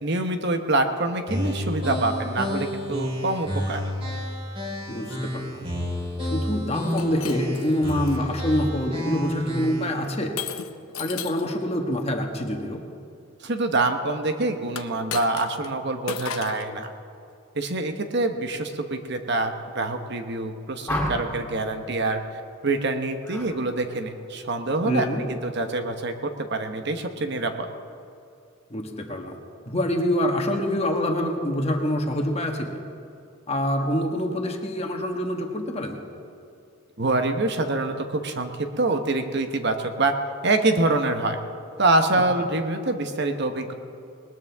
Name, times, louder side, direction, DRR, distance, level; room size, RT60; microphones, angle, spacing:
voice 1, 0.0-3.8 13.4-16.9 17.5-22.2 22.6-27.7 37.0-40.1 40.4-41.4 41.8-43.7, right 2 dB, 50° right, 6 dB, 1.0 m, -25 dB
sound 1, 1.3-10.0, equal, 25° right, 4.4 m, -30 dB
voice 2, 4.9-5.7 6.2-10.3 11.0-12.8 24.8-25.2 28.7-29.3 29.7-32.8 33.5-36.0, left 1 dB, 30° left, 2 dB, 1.5 m, -26 dB
Shatter, 6.8-8.2 8.8-9.2 10.4-11.5 14.7-15.7 16.1-16.7, left 8 dB, 75° left, 0.8 m, -35 dB
Door Bang and Lock, 20.9-21.5 23.2-23.5 23.9-24.3, equal, 10° left, 3.6 m, -30 dB
20.0 x 20.0 x 3.5 m, 2.5 s
head